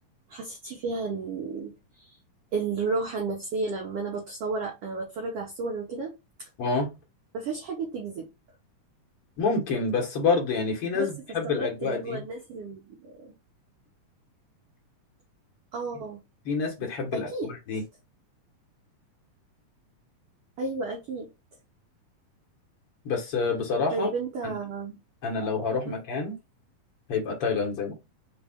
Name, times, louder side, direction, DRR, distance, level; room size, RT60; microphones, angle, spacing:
voice 1, 0.3-2.2 2.5-6.1 6.4-6.5 7.3-8.3 10.9-11.1 11.4-13.3 15.7-16.2 17.1-17.5 20.6-21.3 23.9-25.0 25.6-26.0, right 3 dB, 70° right, 1.4 m, -32 dB
voice 2, 6.6-6.9 9.4-12.2 16.5-17.8 23.1-24.1 24.4-24.5 25.2-26.4 27.1-27.9, left 4 dB, 55° left, 1.7 m, -28 dB
5.1 x 2.4 x 3.5 m
omnidirectional pair, 3.7 m